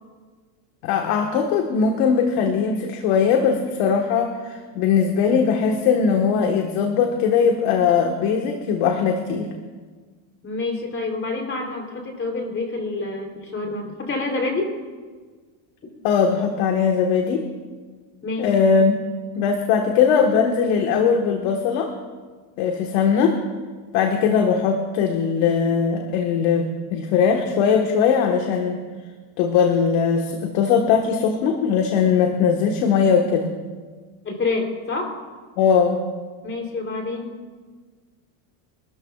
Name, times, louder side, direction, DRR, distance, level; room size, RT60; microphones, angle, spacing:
voice 1, 0.8-9.5 16.0-17.5 18.4-19.0 19.3-21.9 22.6-23.4 23.9-28.8 29.4-33.5 35.6-36.0, left 6 dB, 70° left, 3 dB, 1.5 m, -20 dB
voice 2, 10.4-14.7 18.2-18.5 34.2-35.1 36.4-37.4, left 3 dB, 25° left, 2 dB, 3.3 m, -27 dB
24.5 x 13.5 x 2.4 m, 1.5 s
supercardioid pair, 120°, 46 cm